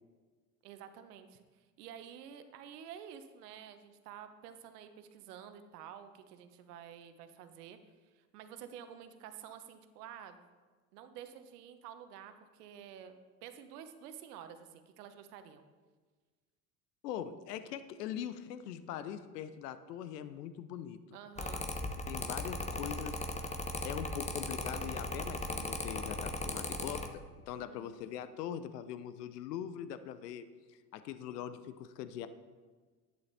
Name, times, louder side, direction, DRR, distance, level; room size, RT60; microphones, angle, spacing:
voice 1, 0.6-7.8 8.1-10.5 10.9-15.6 21.1-21.7 27.6-27.9, right 9 dB, 75° right, 9 dB, 1.1 m, -50 dB
voice 2, 17.0-21.0 22.1-30.4 30.9-32.3, left 10 dB, 75° left, 12 dB, 0.8 m, -42 dB
Mechanical fan, 21.4-27.1, left 2 dB, 15° left, 1.0 m, -38 dB
11.0 x 8.8 x 4.2 m, 1.4 s
hypercardioid pair, 65°, 48 cm